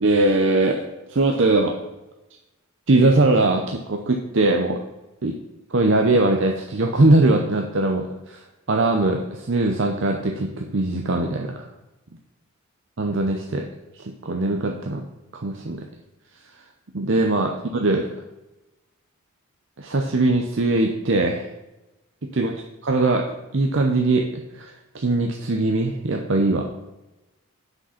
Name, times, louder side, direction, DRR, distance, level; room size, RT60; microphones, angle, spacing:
voice 1, 0.0-0.8 1.1-1.8 2.9-4.8 5.2-5.4 5.7-11.7 13.0-13.7 13.9-15.0 15.4-15.9 16.9-18.1 19.8-21.5 22.3-22.5 22.8-23.2 23.5-26.6, right 2 dB, 55° right, 2 dB, 0.7 m, -21 dB
7.5 x 6.4 x 5.7 m, 0.99 s
head